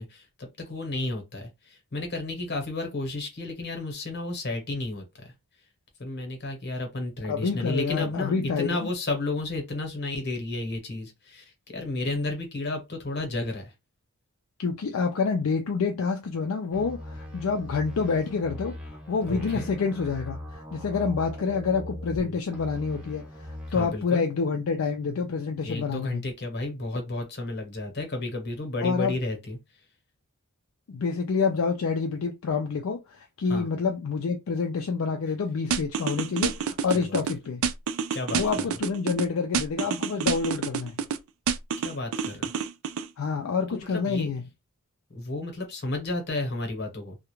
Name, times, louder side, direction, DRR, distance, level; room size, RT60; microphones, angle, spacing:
voice 1, 0.0-5.3 6.0-13.7 19.3-19.7 22.2-22.4 23.7-24.3 25.6-29.6 33.5-33.7 36.9-37.2 38.1-38.7 41.8-42.5 43.7-44.3 45.1-47.2, left 2 dB, 50° left, 0.9 m, -32 dB
voice 2, 7.3-8.9 14.6-26.2 28.8-29.2 30.9-37.7 38.3-40.9 43.2-44.4, left 5 dB, 70° left, 0.4 m, -28 dB
sound 1, 16.7-22.2 22.5-23.9, left 1 dB, 5° right, 0.7 m, -39 dB
sound 2, 35.7-37.3 37.6-39.2 39.5-41.2 41.5-43.1, right 6 dB, 70° right, 0.3 m, -28 dB
2.4 x 2.1 x 3.0 m
head